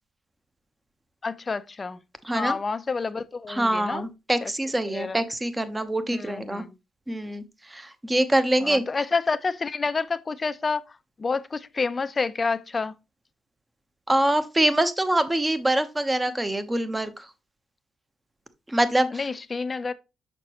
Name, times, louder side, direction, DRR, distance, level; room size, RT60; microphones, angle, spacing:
voice 1, 1.2-2.0 2.3-4.1 4.4-4.5 4.9-5.2 6.1-6.8 8.6-10.8 11.2-12.9 19.1-19.9, left 4 dB, 30° left, 0.5 m, -28 dB
voice 2, 2.2-2.6 3.5-6.6 7.1-9.0 14.1-17.2 18.7-19.2, right 1 dB, 15° right, 0.9 m, -25 dB
6.5 x 5.9 x 2.9 m
cardioid pair, 90°, 0 cm